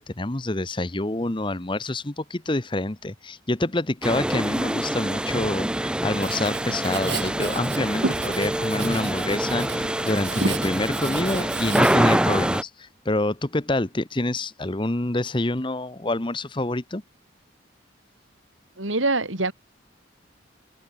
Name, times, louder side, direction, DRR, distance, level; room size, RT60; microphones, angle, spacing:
voice 1, 0.0-17.0, left 2 dB, 25° left, 1.0 m, -27 dB
sound 1, 4.0-12.6, right 1 dB, 5° right, 0.4 m, -25 dB
Writing, 6.1-12.6, right 3 dB, 65° right, 1.7 m, -33 dB
voice 2, 18.8-19.5, right 2 dB, 90° right, 5.1 m, -24 dB
head